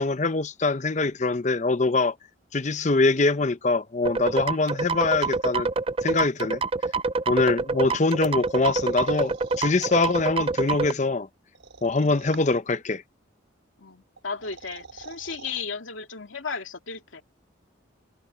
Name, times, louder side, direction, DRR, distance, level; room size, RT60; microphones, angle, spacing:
voice 1, 0.0-2.1 2.5-5.7 6.0-6.6 7.3-11.3 11.8-13.0, left 3 dB, 35° left, 0.7 m, -23 dB
sound 1, 4.1-10.9, right 4 dB, 30° right, 0.4 m, -26 dB
sound 2, 8.2-10.2 11.5-12.7 14.2-15.6, right 4 dB, 70° right, 4.5 m, -46 dB
voice 2, 13.8-17.2, left 5 dB, 85° left, 2.4 m, -35 dB
head